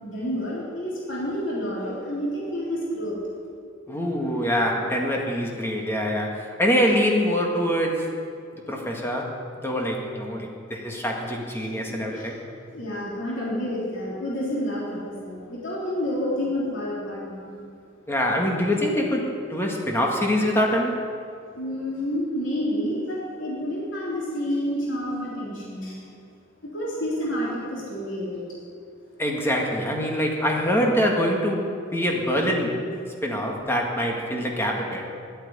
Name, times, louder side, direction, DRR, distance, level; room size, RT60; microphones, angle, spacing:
voice 1, 0.0-3.2 12.1-12.4 12.7-17.6 21.5-26.0 26.6-28.4, equal, 70° left, -6 dB, 3.5 m, -29 dB
voice 2, 3.9-8.2 8.5-9.4 9.6-12.4 18.1-21.0 29.2-32.8 33.2-35.1, equal, 10° left, 0 dB, 1.8 m, -24 dB
11.5 x 9.0 x 9.8 m, 2.4 s
head